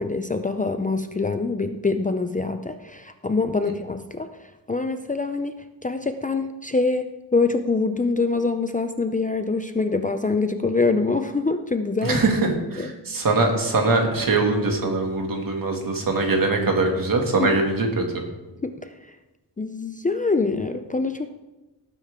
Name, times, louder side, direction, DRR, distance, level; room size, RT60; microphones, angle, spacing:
voice 1, 0.0-5.6 5.8-12.2 12.8-12.9 17.4-17.5 18.6-18.7 19.6-21.3, left 3 dB, 20° left, 8 dB, 0.5 m, -24 dB
voice 2, 12.0-18.0, right 3 dB, 55° right, 2 dB, 2.3 m, -22 dB
18.0 x 9.2 x 3.7 m, 1.1 s
wide cardioid pair, 135°, 40 cm